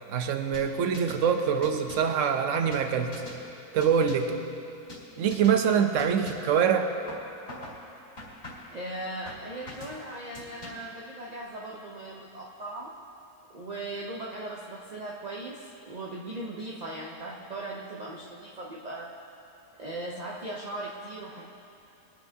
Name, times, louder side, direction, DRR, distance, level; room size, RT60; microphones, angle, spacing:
voice 1, 0.1-3.1 3.7-4.3 5.2-6.9, right 7 dB, 60° right, 6 dB, 1.0 m, -24 dB
sound 1, 0.5-1.2 1.6-2.2 2.7-3.4 3.8-4.4 4.9-5.1 5.3-5.6 6.0-6.5 7.1-7.8 8.2-8.8 9.3-10.0 10.3-11.0, left 1 dB, 45° left, 2.5 m, -43 dB
voice 2, 8.7-12.9 13.5-19.1 19.8-21.4, right 2 dB, 40° right, -2 dB, 0.6 m, -38 dB
21.5 x 10.0 x 2.8 m, 2.8 s
omnidirectional pair, 1.7 m